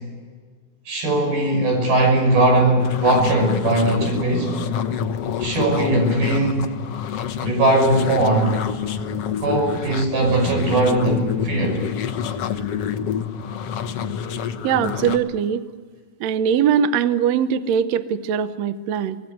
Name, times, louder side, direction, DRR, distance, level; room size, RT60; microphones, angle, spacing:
voice 1, 0.9-4.6 5.4-6.7 7.4-8.6 9.4-11.8, right 2 dB, 70° right, 3 dB, 7.7 m, -19 dB
sound 1, 2.8-15.2, left 8 dB, 90° left, 1.3 m, -28 dB
voice 2, 14.6-15.6 16.2-19.2, right 8 dB, 85° right, 12 dB, 1.5 m, -21 dB
25.5 x 18.5 x 9.3 m, 1.5 s
omnidirectional pair, 4.6 m